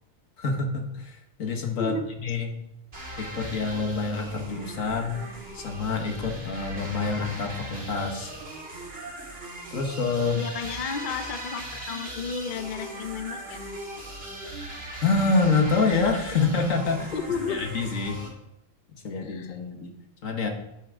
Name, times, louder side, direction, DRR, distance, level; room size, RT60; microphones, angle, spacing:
voice 1, 0.4-2.5 3.2-5.3 5.5-8.3 9.7-10.4 15.0-17.1 17.5-18.2 19.0-19.9 20.2-20.5, left 4 dB, 90° left, 4 dB, 1.9 m, -26 dB
voice 2, 1.8-2.1 10.3-13.6 17.1-17.7 19.2-19.6, left 5 dB, 45° left, 8 dB, 0.8 m, -32 dB
sound 1, 2.9-18.3, right 1 dB, 50° right, 2.5 m, -39 dB
9.9 x 9.6 x 3.8 m, 0.85 s
omnidirectional pair, 1.3 m